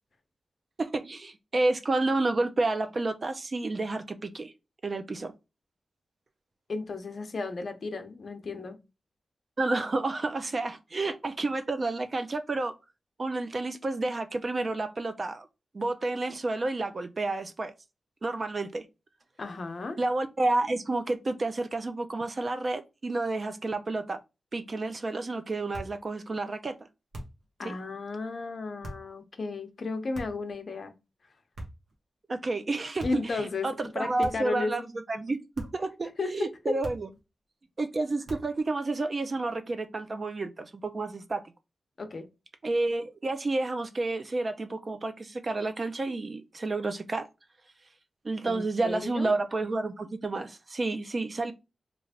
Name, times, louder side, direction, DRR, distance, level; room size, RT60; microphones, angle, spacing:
voice 1, 0.8-4.5 4.8-5.3 9.6-12.7 13.2-15.5 15.7-17.7 18.2-18.8 20.0-24.2 24.5-26.7 27.6-27.7 32.3-37.1 37.8-41.4 42.6-47.3 48.2-51.5, right 2 dB, 40° right, 0.5 m, -30 dB
voice 2, 6.7-8.8 19.4-20.0 27.6-30.9 33.0-33.7 33.9-34.7 36.2-36.5 42.0-42.3 48.5-49.3, left 3 dB, 55° left, 0.7 m, -34 dB
sound 1, 25.7-26.0 27.1-27.5 28.8-29.1 30.1-30.5 31.5-32.0 33.0-33.3 34.2-34.6 35.5-35.9 36.8-37.2 38.3-38.6, right 1 dB, 90° right, 1.1 m, -42 dB
3.2 x 2.5 x 3.5 m
wide cardioid pair, 95°, 0 cm